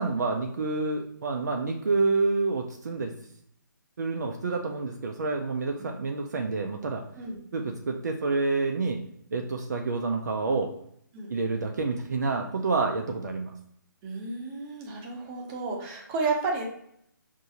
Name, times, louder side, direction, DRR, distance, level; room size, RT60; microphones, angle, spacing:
voice 1, 0.0-3.1 4.0-7.0 7.5-9.0 9.3-10.7 11.3-13.5, right 3 dB, 55° right, 3 dB, 0.5 m, -28 dB
voice 2, 14.0-16.6, right 3 dB, 20° right, -1 dB, 0.9 m, -32 dB
5.5 x 2.7 x 2.7 m, 0.71 s
figure-of-eight pair, 140°, 11 cm